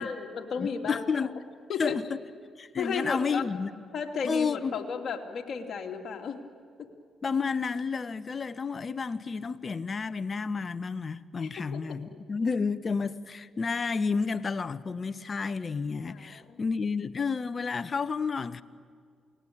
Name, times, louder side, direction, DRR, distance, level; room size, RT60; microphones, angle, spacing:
voice 1, 0.0-1.3 1.7-2.0 2.8-3.4 3.9-6.4 6.8-6.9 11.4-12.0 16.1-16.6, left 6 dB, 60° left, 2.8 m, -34 dB
voice 2, 0.6-1.3 1.8-2.2 2.6-3.7 4.2-4.8 7.2-18.6, left 5 dB, 45° left, 1.1 m, -31 dB
28.5 x 19.5 x 8.8 m
supercardioid pair, 55°, 0 cm